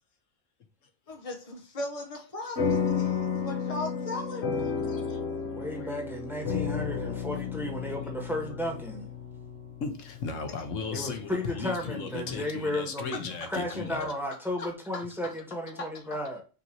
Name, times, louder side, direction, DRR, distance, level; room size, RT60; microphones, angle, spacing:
voice 1, 1.1-4.7 14.9-15.0 15.8-15.9, left 2 dB, 35° left, 0.6 m, -37 dB
sound 1, 2.6-11.3, left 6 dB, 60° left, 1.0 m, -32 dB
voice 2, 4.9-5.2 5.7-5.9 9.8-14.1, left 5 dB, 75° left, 1.2 m, -36 dB
voice 3, 5.5-9.0 10.9-13.2 13.5-16.4, left 1 dB, ahead, 1.3 m, -34 dB
5.6 x 2.8 x 2.8 m
omnidirectional pair, 1.3 m